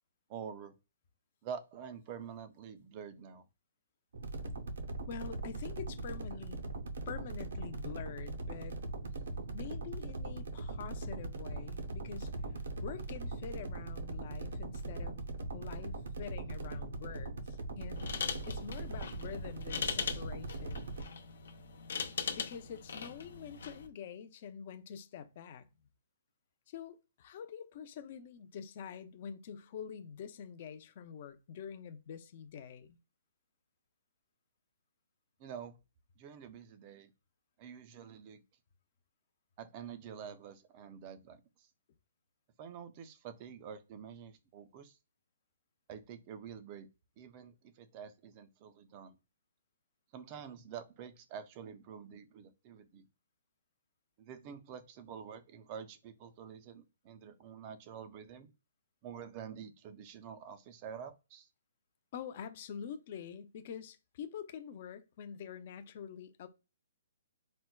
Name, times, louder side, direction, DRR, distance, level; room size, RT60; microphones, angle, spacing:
voice 1, 0.3-0.7 1.4-3.4 35.4-35.8 36.2-37.1 37.6-38.4 39.6-41.7 42.6-45.0 45.9-46.9 47.2-49.2 50.1-53.0 54.2-58.5 59.0-61.5, right 7 dB, 25° right, 0.4 m, -47 dB
sound 1, 4.1-21.0, right 2 dB, 70° right, 0.6 m, -40 dB
voice 2, 5.1-6.7 7.1-8.8 9.5-12.3 12.8-15.2 15.5-18.1 18.5-20.9 22.3-25.7 26.7-33.0 62.1-66.5, left 7 dB, 35° left, 0.4 m, -46 dB
sound 2, 17.9-23.9, left 6 dB, 75° left, 0.6 m, -40 dB
4.2 x 2.1 x 2.2 m
hypercardioid pair, 165°, 0 cm